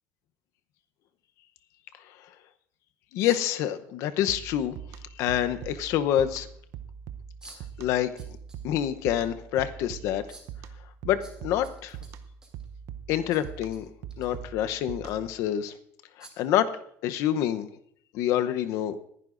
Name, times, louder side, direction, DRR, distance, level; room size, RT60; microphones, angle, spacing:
voice 1, 3.1-4.8 5.2-6.5 7.8-8.1 8.6-10.2 11.0-12.0 13.1-13.9 14.2-15.7 16.2-16.7 17.0-17.7 18.1-19.0, left 11 dB, 60° left, 11 dB, 0.8 m, -27 dB
sound 1, 3.2-3.6 5.1-5.2 7.4-7.7 8.2-8.6 9.0-9.1 10.3-10.6 11.2-12.7 13.3-13.8 14.1-14.3 15.0-15.1 16.2-16.5, right 3 dB, 15° right, 2.6 m, -51 dB
sound 2, 4.3-15.4, right 8 dB, 55° right, 0.8 m, -43 dB
20.5 x 11.0 x 2.6 m, 0.66 s
cardioid pair, 135°, 6 cm